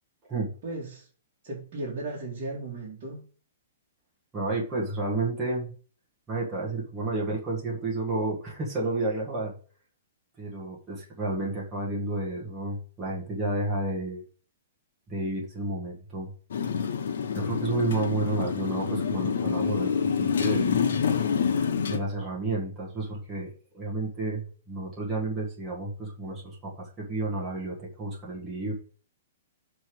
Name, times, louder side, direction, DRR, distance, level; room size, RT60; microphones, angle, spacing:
voice 1, 0.6-1.1 1.4-3.2, right 2 dB, 35° right, -7 dB, 2.1 m, -36 dB
voice 2, 4.3-5.7 6.3-9.6 10.4-14.2 15.1-16.3 17.3-20.8 21.9-28.7, right 2 dB, 10° right, -6 dB, 1.6 m, -31 dB
Motorcycle, 16.5-22.0, left 6 dB, 70° left, 1.0 m, -27 dB
6.8 x 3.4 x 6.1 m, 0.41 s
hypercardioid pair, 170°, 0 cm